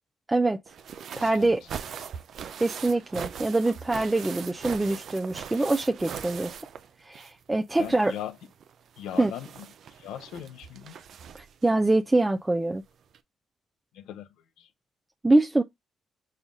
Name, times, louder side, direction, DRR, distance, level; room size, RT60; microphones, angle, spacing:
voice 1, 0.3-0.6 1.2-1.6 2.6-6.5 7.0-8.1 9.2-9.3 11.3-12.8 15.2-15.6, right 2 dB, 15° right, 0.4 m, -24 dB
sound 1, 0.7-7.4 7.7-11.7 12.7-12.8 13.1-13.2, right 7 dB, 65° right, 0.5 m, -41 dB
voice 2, 1.1-1.5 2.0-2.1 7.8-8.4 9.0-9.7 10.0-11.0 13.9-14.3 14.6-14.7, left 10 dB, 85° left, 0.7 m, -39 dB
5.6 x 2.4 x 3.5 m
cardioid pair, 90°, 0 cm